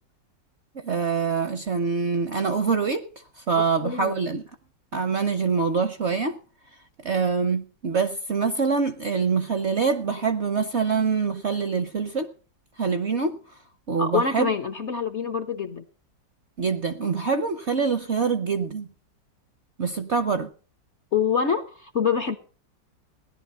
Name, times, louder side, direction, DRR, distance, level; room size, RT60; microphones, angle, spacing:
voice 1, 0.8-3.1 3.4-4.4 4.9-6.4 7.0-12.3 12.8-13.4 13.9-14.5 16.6-18.9 19.8-20.5, right 5 dB, 55° right, 0.8 m, -25 dB
voice 2, 3.5-4.1 14.0-15.8 21.1-22.4, left 6 dB, 55° left, 0.8 m, -26 dB
16.5 x 11.0 x 5.4 m
omnidirectional pair, 2.0 m